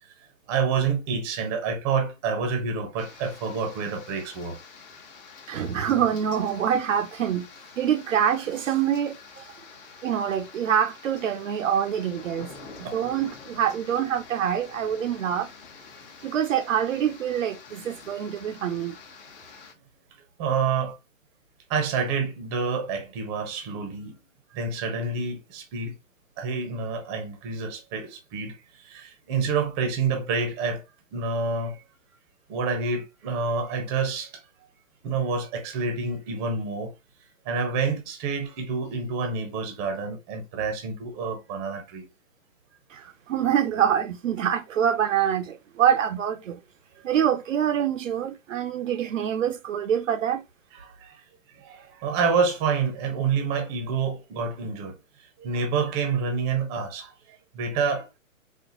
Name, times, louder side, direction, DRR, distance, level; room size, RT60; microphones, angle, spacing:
voice 1, 0.5-4.6 12.8-13.0 20.4-20.9 21.7-24.1 24.5-25.9 26.4-28.5 28.9-30.8 31.1-31.8 32.5-34.3 35.0-36.9 37.5-42.0 50.7-50.8 51.6-54.9 55.4-57.1 57.5-58.1, right 5 dB, 20° right, 0.6 m, -28 dB
sound 1, 3.0-19.7, left 5 dB, 40° left, 1.0 m, -47 dB
voice 2, 5.5-7.5 7.8-9.5 10.0-12.5 12.8-15.5 16.2-19.0 42.9-46.6 47.0-50.4, right 9 dB, 70° right, 0.6 m, -25 dB
4.2 x 2.2 x 2.8 m
hypercardioid pair, 135°, 41 cm